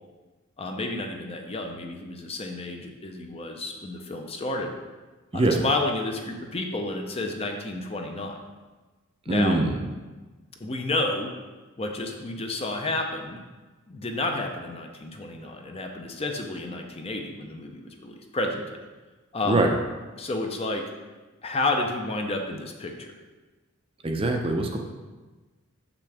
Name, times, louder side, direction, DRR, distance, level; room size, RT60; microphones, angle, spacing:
voice 1, 0.6-4.7 5.3-8.4 9.3-9.6 10.6-11.3 11.8-13.4 13.9-18.8 19.3-19.7 20.2-20.8 21.4-23.1, left 2 dB, 25° left, 3 dB, 0.6 m, -30 dB
voice 2, 9.3-9.7 19.5-19.7 24.0-24.8, right 2 dB, 25° right, 2 dB, 0.5 m, -22 dB
6.8 x 6.0 x 3.4 m, 1.3 s
head